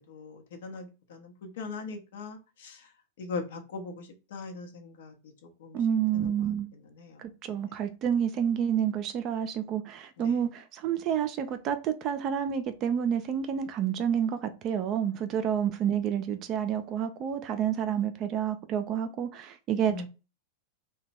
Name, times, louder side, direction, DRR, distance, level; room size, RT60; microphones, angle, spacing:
voice 1, 0.0-2.9 3.2-5.3 5.6-5.8 6.1-7.3 10.2-10.4 19.9-20.1, left 4 dB, 60° left, 0.8 m, -41 dB
voice 2, 5.7-6.7 7.2-20.1, right 8 dB, 35° right, 0.4 m, -29 dB
2.9 x 2.2 x 4.1 m
figure-of-eight pair, 90°, 0 cm